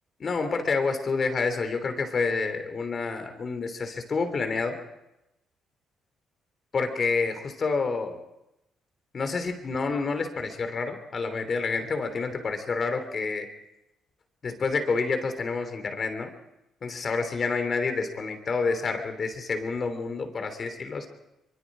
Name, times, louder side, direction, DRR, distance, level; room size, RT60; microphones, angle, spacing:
voice 1, 0.2-4.8 6.7-8.2 9.1-13.5 14.4-16.3 16.8-21.1, left 4 dB, 45° left, 7 dB, 3.2 m, -28 dB
24.0 x 23.5 x 5.0 m, 0.90 s
cardioid pair, 90°, 0 cm